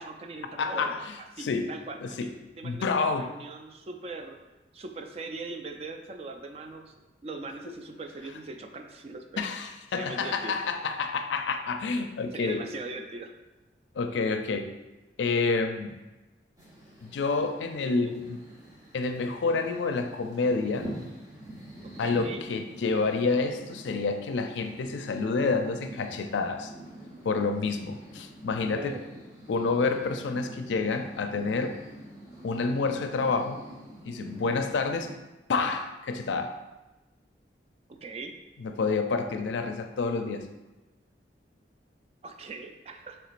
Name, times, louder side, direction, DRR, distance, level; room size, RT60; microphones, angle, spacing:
voice 1, 0.0-2.3 2.6-4.4 4.7-6.9 7.2-9.4 9.9-10.6 12.3-13.3 18.1-18.2 21.8-22.4 28.7-29.1 37.9-38.4 42.2-43.2, right 3 dB, 35° right, 5 dB, 0.3 m, -40 dB
voice 2, 0.6-1.7 2.0-2.3 2.6-3.3 7.7-7.8 9.4-12.6 14.0-14.7 15.2-16.0 17.0-18.4 18.9-20.9 22.0-26.7 27.2-29.0 29.5-31.8 32.4-33.6 34.0-35.1 35.5-36.6 38.6-40.5, left 4 dB, 80° left, 7 dB, 0.4 m, -28 dB
sound 1, 16.6-35.1, right 1 dB, 20° right, 0.7 m, -45 dB
5.9 x 3.4 x 2.5 m, 1.1 s
head